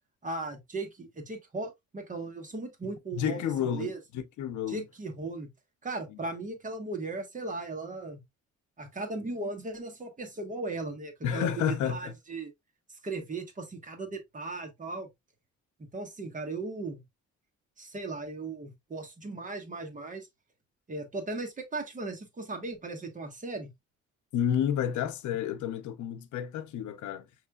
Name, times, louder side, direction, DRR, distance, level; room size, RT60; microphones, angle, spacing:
voice 1, 0.2-4.0 4.7-5.5 5.8-8.2 8.8-12.5 13.0-15.1 15.8-17.0 17.8-20.3 20.9-23.7, right 3 dB, 25° right, 1.2 m, -37 dB
voice 2, 2.8-4.8 11.2-12.1 24.3-27.3, left 9 dB, 75° left, 0.6 m, -31 dB
5.8 x 3.2 x 2.3 m
cardioid pair, 145°, 30 cm